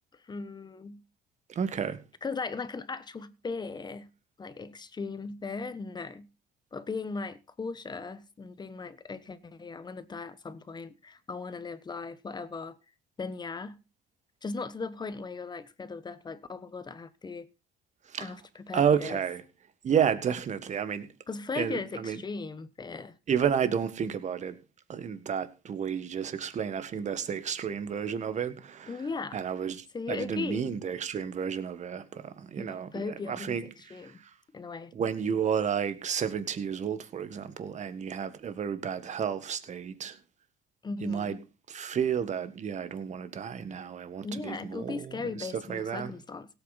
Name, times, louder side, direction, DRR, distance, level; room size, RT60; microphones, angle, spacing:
voice 1, 0.2-1.0 2.2-4.1 4.4-6.3 6.7-12.8 13.2-13.8 14.4-17.5 18.2-19.2 21.3-23.2 28.9-29.4 29.9-30.8 32.6-34.2 34.5-34.9 40.8-41.4 44.2-46.5, left 4 dB, 25° left, 1.2 m, -38 dB
voice 2, 1.5-2.0 18.1-18.3 18.7-19.4 19.8-21.1 21.5-22.2 23.3-24.6 24.9-29.0 29.3-33.6 34.0-34.1 34.9-40.2 41.0-41.4 41.7-46.1, right 7 dB, 45° right, 1.6 m, -31 dB
17.0 x 8.4 x 4.2 m
cardioid pair, 110°, 17 cm